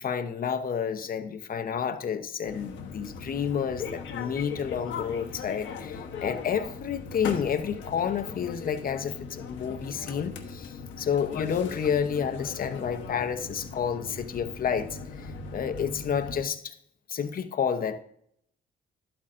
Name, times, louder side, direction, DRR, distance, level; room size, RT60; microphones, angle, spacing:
voice 1, 0.0-16.7 17.1-18.0, left 7 dB, 45° left, 9 dB, 0.8 m, -30 dB
sound 1, 2.4-16.4, left 5 dB, 75° left, 1.1 m, -39 dB
11.5 x 8.6 x 2.6 m, 0.69 s
cardioid pair, 90°, 20 cm